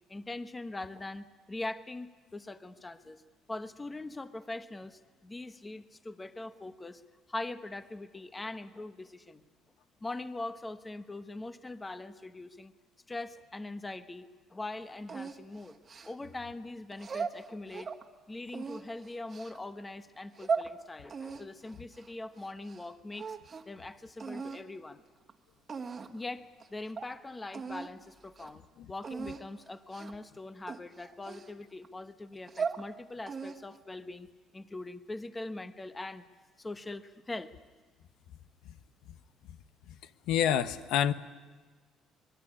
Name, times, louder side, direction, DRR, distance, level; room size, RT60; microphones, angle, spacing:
voice 1, 0.1-3.2 3.5-7.0 7.3-9.4 10.0-12.7 13.1-15.8 16.0-17.9 18.3-23.4 23.7-25.0 26.1-28.6 28.9-34.3 34.5-36.2 36.6-37.5, left 2 dB, 15° left, 10 dB, 1.0 m, -42 dB
sound 1, 15.1-16.4 16.9-18.0 18.5-19.6 20.1-20.7 21.1-22.9 23.1-23.8 24.2-24.6 25.3-25.4 25.7-26.2 26.6-26.7 27.0-27.1 27.5-27.9 28.3-28.5 29.0-29.4 29.9-30.2 30.7-31.9 32.3-32.8 33.3-33.8, right 5 dB, 30° right, 1.6 m, -38 dB
voice 2, 40.3-41.1, left 9 dB, 90° left, 10 dB, 1.1 m, -26 dB
25.5 x 21.5 x 10.0 m, 1.4 s
cardioid pair, 145°, 0 cm